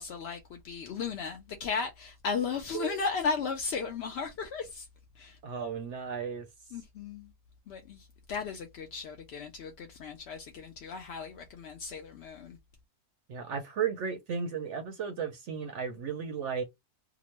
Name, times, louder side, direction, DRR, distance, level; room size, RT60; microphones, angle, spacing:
voice 1, 0.0-4.9 5.2-5.4 6.7-7.3 7.7-12.6, left 5 dB, 75° left, 0.6 m, -35 dB
voice 2, 5.4-6.8 13.3-16.6, right 7 dB, 65° right, 0.7 m, -34 dB
2.9 x 2.0 x 2.9 m
omnidirectional pair, 1.6 m